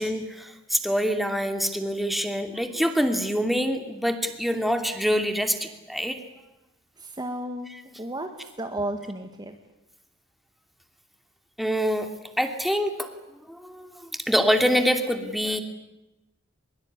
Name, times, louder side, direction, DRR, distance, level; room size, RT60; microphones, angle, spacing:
voice 1, 0.0-6.2 11.6-12.1 12.4-13.1 13.5-15.6, equal, ahead, 6 dB, 2.7 m, -25 dB
voice 2, 7.0-7.7 8.0-9.6, right 1 dB, 20° right, 5 dB, 1.8 m, -33 dB
23.5 x 22.5 x 9.8 m, 0.96 s
head